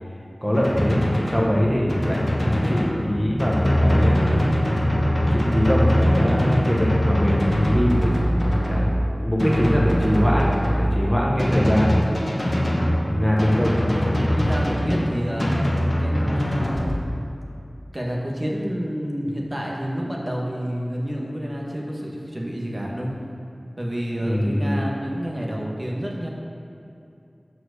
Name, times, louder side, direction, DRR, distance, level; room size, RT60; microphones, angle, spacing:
voice 1, 0.4-4.6 5.3-8.1 8.7-8.9 9.2-10.5 10.8-12.1 13.0-13.8 24.2-24.8, equal, 5° right, -4 dB, 1.1 m, -23 dB
Drum, 0.5-16.9, equal, 35° left, 1.2 m, -22 dB
voice 2, 13.0-13.5 14.3-15.6 16.0-17.4 17.9-23.1 23.8-26.3, equal, 30° right, -2 dB, 1.4 m, -29 dB
8.9 x 4.8 x 6.6 m, 2.7 s
wide cardioid pair, 55°, 0 cm